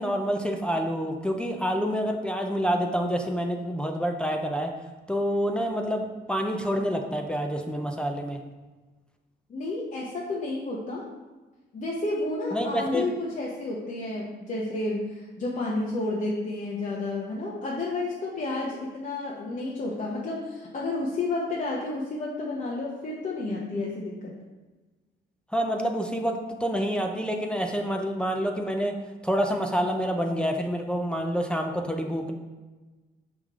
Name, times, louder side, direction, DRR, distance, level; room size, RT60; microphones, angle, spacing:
voice 1, 0.0-4.7 5.1-8.4 12.5-13.0 25.5-29.0 29.2-32.3, equal, 5° left, 2 dB, 0.6 m, -27 dB
voice 2, 9.5-11.1 11.7-24.3, left 2 dB, 40° left, -4 dB, 1.0 m, -31 dB
5.2 x 5.0 x 3.7 m, 1.2 s
cardioid pair, 90°, 20 cm